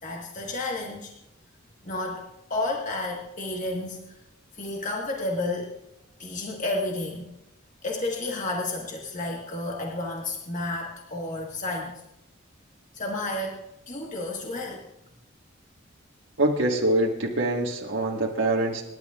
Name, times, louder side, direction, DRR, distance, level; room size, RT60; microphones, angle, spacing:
voice 1, 0.0-1.1 1.8-4.2 4.5-5.7 6.2-7.3 7.8-12.0 12.9-14.8, left 2 dB, 40° left, -1 dB, 1.5 m, -31 dB
voice 2, 16.4-18.8, right 1 dB, 70° right, -2 dB, 1.6 m, -24 dB
27.5 x 11.0 x 2.4 m, 0.91 s
head